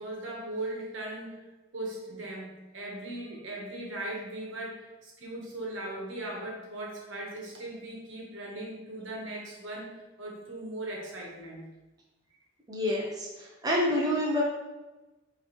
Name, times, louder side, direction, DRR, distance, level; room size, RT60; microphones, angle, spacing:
voice 1, 0.0-1.3 1.7-9.9 10.2-11.7, right 1 dB, 75° right, -2 dB, 1.1 m, -38 dB
voice 2, 12.7-14.4, left 1 dB, 20° right, -3 dB, 0.5 m, -28 dB
4.8 x 3.0 x 3.0 m, 1.1 s
head